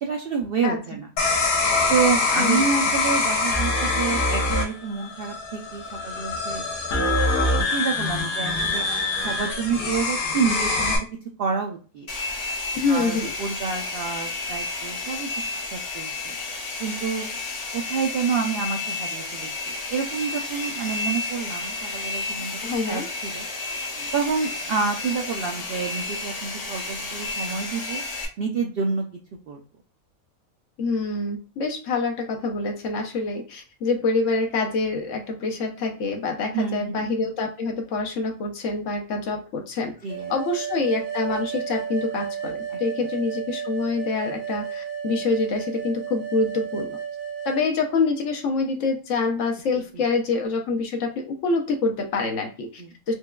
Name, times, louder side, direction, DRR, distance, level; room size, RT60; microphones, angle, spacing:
voice 1, 0.0-1.1 1.9-6.6 7.7-8.8 9.2-11.0 11.4-12.1 12.9-15.3 15.7-16.4 16.8-17.4 17.7-23.4 24.1-28.0 28.4-29.0 29.5-29.6 36.5-37.1 40.0-40.3 42.7-42.8 49.7-50.0 52.8-53.0, right 5 dB, 70° right, 2 dB, 0.5 m, -28 dB
sound 1, 1.2-11.0, left 3 dB, 90° left, 1.3 m, -24 dB
Domestic sounds home sounds, 12.1-28.3, left 3 dB, 35° left, 0.7 m, -32 dB
voice 2, 12.7-13.3 22.6-23.1 30.8-39.9 40.3-47.0 47.4-52.8 53.1-53.2, left 3 dB, 65° left, 2 dB, 1.0 m, -26 dB
sound 2, 40.1-47.7, right 8 dB, 85° right, 1.2 m, -33 dB
4.4 x 2.2 x 2.2 m, 0.37 s
omnidirectional pair, 1.5 m